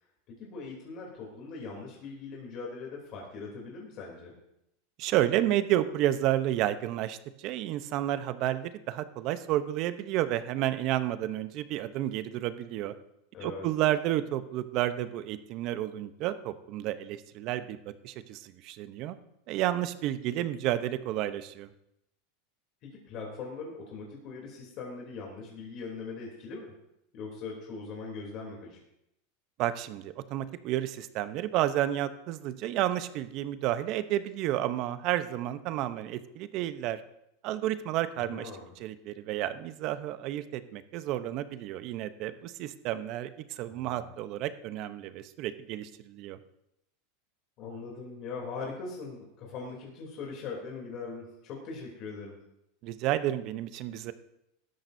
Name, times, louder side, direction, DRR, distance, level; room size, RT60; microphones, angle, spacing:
voice 1, 0.3-4.4 13.3-13.7 22.8-26.7 27.1-28.8 38.2-38.7 43.7-44.1 47.6-52.3, left 4 dB, 50° left, -1 dB, 3.2 m, -41 dB
voice 2, 5.0-12.9 13.4-17.8 18.0-19.2 19.5-21.7 29.6-37.0 37.4-38.5 38.8-46.4 52.8-54.1, right 13 dB, 50° right, 12 dB, 0.8 m, -31 dB
17.0 x 13.0 x 2.7 m, 0.80 s
supercardioid pair, 115°, 0 cm